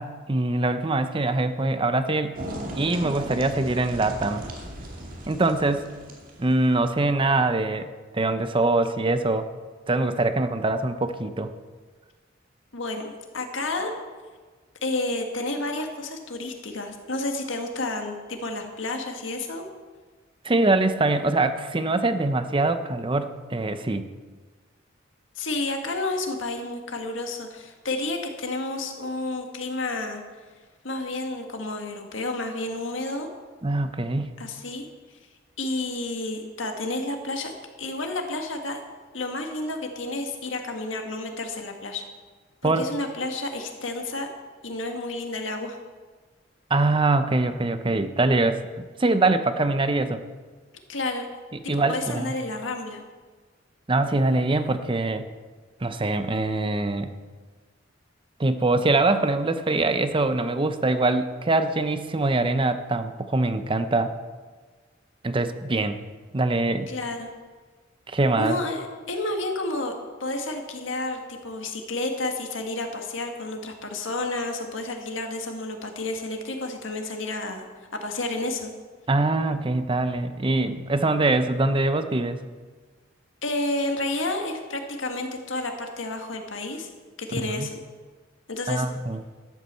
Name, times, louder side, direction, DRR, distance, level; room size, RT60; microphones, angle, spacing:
voice 1, 0.0-2.4 2.8-4.5 5.3-5.9 6.4-9.5 9.9-11.5 20.4-24.1 33.6-34.4 42.6-42.9 46.7-50.2 51.5-52.3 53.9-55.3 55.8-57.1 58.4-64.1 65.2-66.1 66.3-66.9 68.1-68.5 79.1-82.4 87.3-87.7 88.7-89.2, right 2 dB, 25° right, 10 dB, 0.7 m, -23 dB
sound 1, 2.3-6.7, right 1 dB, 45° right, 2.4 m, -37 dB
voice 2, 12.7-13.9 14.8-19.7 25.4-30.2 30.8-33.3 34.4-34.9 35.6-37.5 37.8-38.8 39.1-42.1 42.6-44.3 44.6-45.8 50.9-51.2 51.6-53.0 66.9-67.3 68.4-69.9 70.2-77.7 77.9-78.7 83.4-86.9 87.2-87.8 88.5-88.8, left 2 dB, 80° left, 4 dB, 1.8 m, -30 dB
12.0 x 8.5 x 7.5 m, 1.4 s
head